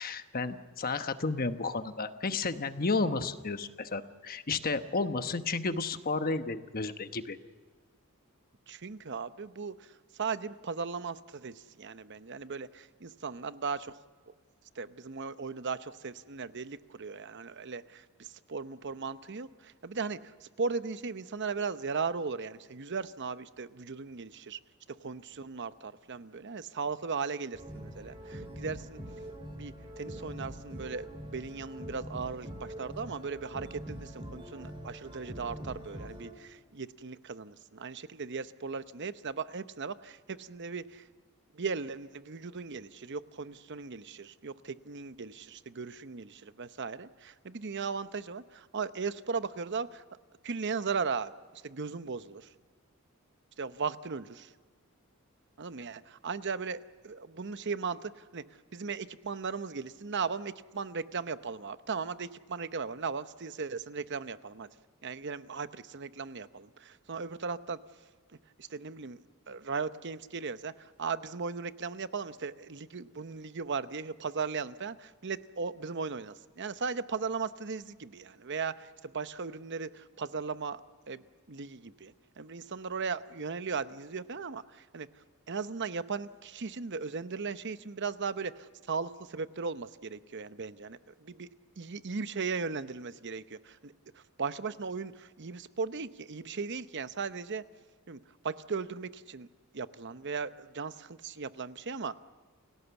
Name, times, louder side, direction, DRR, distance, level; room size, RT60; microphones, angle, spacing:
voice 1, 0.0-7.4, left 3 dB, 45° left, 9 dB, 1.1 m, -32 dB
voice 2, 8.7-14.0 14.8-24.6 25.0-29.0 29.5-41.1 41.5-50.0 50.4-52.5 53.6-54.5 55.6-58.4 58.7-64.7 65.0-67.8 68.6-69.2 69.5-80.8 81.1-81.2 81.5-85.1 85.5-91.5 91.8-97.6 98.1-98.2 98.4-99.5 99.7-102.1, right 5 dB, 55° right, 13 dB, 0.8 m, -37 dB
sound 1, 27.5-36.3, equal, 25° right, 3.6 m, -44 dB
29.5 x 17.5 x 7.1 m, 1.5 s
head